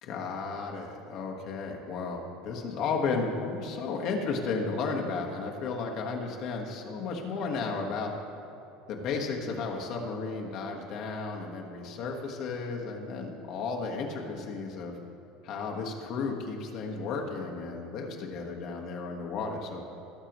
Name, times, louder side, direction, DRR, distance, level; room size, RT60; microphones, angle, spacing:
voice 1, 0.0-8.1 8.9-14.9 15.4-19.8, left 4 dB, 45° left, 1 dB, 1.4 m, -33 dB
18.0 x 6.7 x 3.0 m, 2.8 s
cardioid pair, 160°, 0 cm